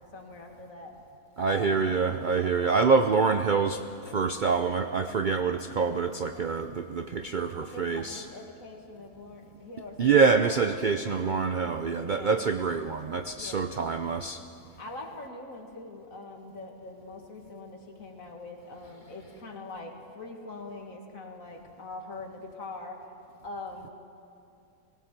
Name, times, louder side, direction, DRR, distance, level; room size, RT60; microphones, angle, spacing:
voice 1, 0.1-0.9 1.4-1.9 2.2-3.0 7.6-10.6 12.0-12.5 13.4-13.7 14.8-23.0 23.4-23.9, left 2 dB, 55° left, 2 dB, 2.4 m, -43 dB
voice 2, 1.4-8.2 10.0-14.4, right 5 dB, 85° right, 8 dB, 0.4 m, -26 dB
20.0 x 17.5 x 7.5 m, 2.6 s
omnidirectional pair, 1.7 m